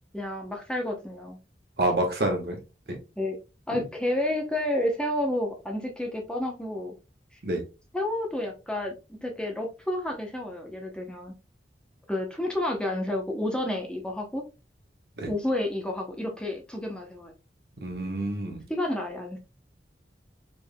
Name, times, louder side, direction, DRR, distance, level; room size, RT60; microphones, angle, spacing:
voice 1, 0.1-1.4 3.2-3.4 3.7-6.9 7.9-8.9 9.2-11.3 12.1-14.4 15.3-17.3 18.7-19.4, left 1 dB, 5° left, 0.7 m, -30 dB
voice 2, 1.8-2.6 3.7-3.8 7.4-7.6 15.2-15.3 17.8-18.6, right 1 dB, 60° right, 1.3 m, -27 dB
5.1 x 3.4 x 2.2 m
head